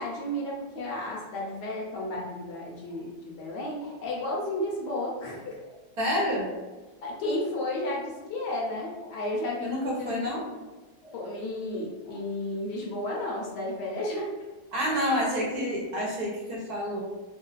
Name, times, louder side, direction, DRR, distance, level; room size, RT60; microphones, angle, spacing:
voice 1, 0.0-5.7 7.0-10.3 11.0-14.3, left 1 dB, 75° left, -3 dB, 1.2 m, -33 dB
voice 2, 6.0-6.5 9.6-10.5 14.7-17.0, equal, 70° right, -4 dB, 1.0 m, -28 dB
3.2 x 2.2 x 2.2 m, 1.2 s
omnidirectional pair, 2.0 m